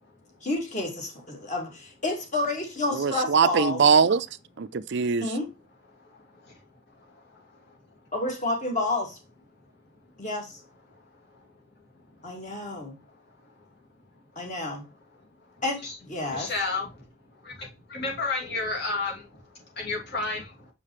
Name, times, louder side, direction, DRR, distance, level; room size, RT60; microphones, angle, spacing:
voice 1, 0.4-3.8 5.2-5.5 8.1-9.2 10.2-10.6 12.2-13.0 14.4-14.8 15.6-16.5, left 2 dB, 35° left, 2.3 m, -30 dB
voice 2, 2.9-4.3 4.6-5.3, right 5 dB, 55° right, 0.5 m, -21 dB
voice 3, 16.3-17.0 17.4-20.7, left 3 dB, 55° left, 2.6 m, -32 dB
6.6 x 5.7 x 3.2 m
head